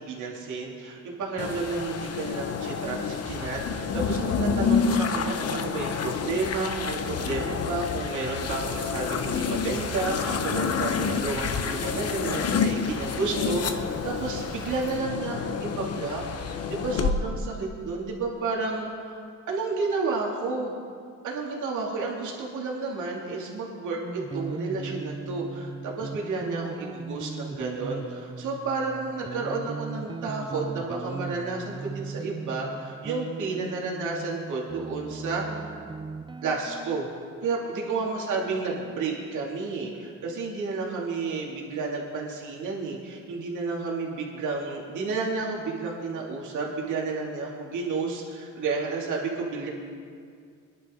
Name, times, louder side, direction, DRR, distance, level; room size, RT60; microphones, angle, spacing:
voice 1, 0.0-20.7 21.2-35.5 36.4-37.1 37.4-49.7, right 3 dB, 80° right, -3 dB, 2.8 m, -31 dB
sound 1, 1.4-17.1, left 6 dB, 55° left, 1.1 m, -29 dB
Rain, 8.3-15.0, equal, 10° left, 2.5 m, -43 dB
sound 2, 24.0-37.1, right 4 dB, 15° right, 0.4 m, -38 dB
23.0 x 11.0 x 3.9 m, 2.2 s
cardioid pair, 90°, 30 cm